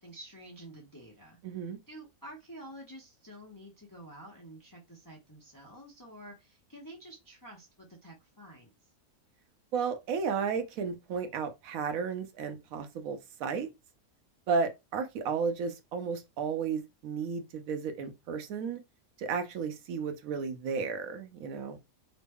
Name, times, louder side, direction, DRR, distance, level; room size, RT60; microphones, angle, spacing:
voice 1, 0.0-1.4 1.9-8.7, right 1 dB, 25° left, 0.5 m, -49 dB
voice 2, 1.4-1.8 9.7-13.7 14.5-18.8 19.2-21.8, right 5 dB, 75° right, 1.0 m, -33 dB
3.0 x 2.0 x 3.4 m
omnidirectional pair, 1.5 m